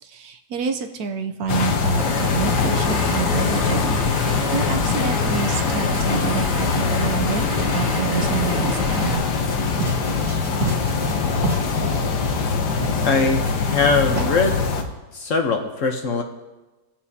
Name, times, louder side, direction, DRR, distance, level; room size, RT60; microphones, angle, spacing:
voice 1, 0.0-9.2 10.1-10.4, right 6 dB, 65° right, 7 dB, 1.1 m, -28 dB
sound 1, 1.5-14.8, left 5 dB, 75° left, 1.5 m, -23 dB
sound 2, 2.0-9.2, left 1 dB, 5° right, 1.9 m, -30 dB
sound 3, 9.5-12.5 12.8-13.1 13.4-13.9 14.1-14.3, right 2 dB, 30° right, 2.3 m, -29 dB
voice 2, 13.0-14.6 15.1-16.2, left 4 dB, 55° left, 4 dB, 1.1 m, -21 dB
20.0 x 7.3 x 2.8 m, 1.1 s
omnidirectional pair, 1.8 m